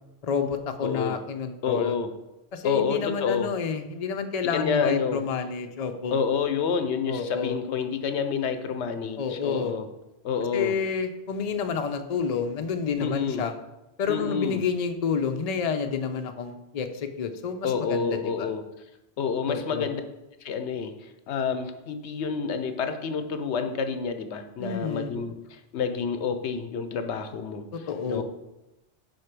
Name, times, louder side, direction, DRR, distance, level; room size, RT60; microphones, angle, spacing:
voice 1, 0.2-2.0 2.5-6.2 7.1-7.6 9.2-9.7 10.5-13.5 14.0-18.5 19.5-19.9 24.6-25.1 27.9-28.2, left 6 dB, 45° left, 7 dB, 0.6 m, -29 dB
voice 2, 0.8-1.2 1.6-2.1 2.6-3.5 4.4-5.2 6.1-9.9 10.2-10.8 13.0-13.5 14.1-14.6 17.6-18.6 19.2-20.0 20.4-27.7 28.1-28.2, left 6 dB, 80° left, 9 dB, 1.0 m, -28 dB
6.4 x 4.4 x 5.9 m, 0.94 s
omnidirectional pair, 1.1 m